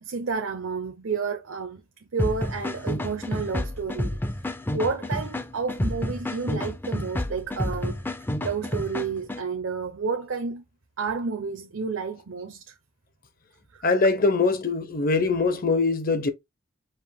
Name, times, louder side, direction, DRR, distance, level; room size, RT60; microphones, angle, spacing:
voice 1, 0.0-4.2 4.7-8.0 8.4-10.6 11.0-12.8, right 5 dB, 70° right, 0.7 m, -30 dB
sound 1, 2.2-9.4, left 1 dB, 10° left, 0.4 m, -30 dB
voice 2, 13.8-16.3, left 3 dB, 45° left, 0.7 m, -22 dB
5.0 x 2.5 x 3.6 m
head